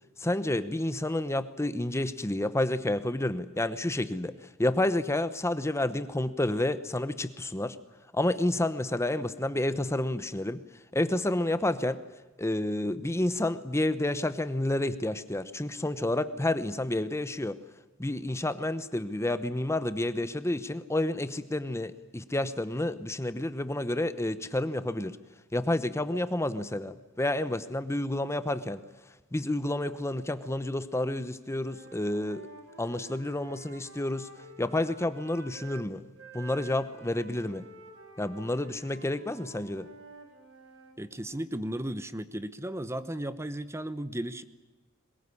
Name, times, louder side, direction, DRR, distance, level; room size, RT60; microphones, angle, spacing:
voice 1, 0.2-4.3 4.6-7.8 8.1-10.6 10.9-12.0 12.4-17.6 18.0-25.2 25.5-28.8 29.3-32.5 32.8-34.3 34.6-36.0 36.3-37.6 38.2-39.9, left 1 dB, 15° left, 12 dB, 0.9 m, -30 dB
Wind instrument woodwind instrument, 31.5-35.9 36.2-41.0, right 3 dB, 70° right, 4.7 m, -50 dB
voice 2, 41.0-44.4, right 1 dB, 15° right, 13 dB, 1.0 m, -35 dB
22.5 x 21.0 x 9.8 m, 1.2 s
head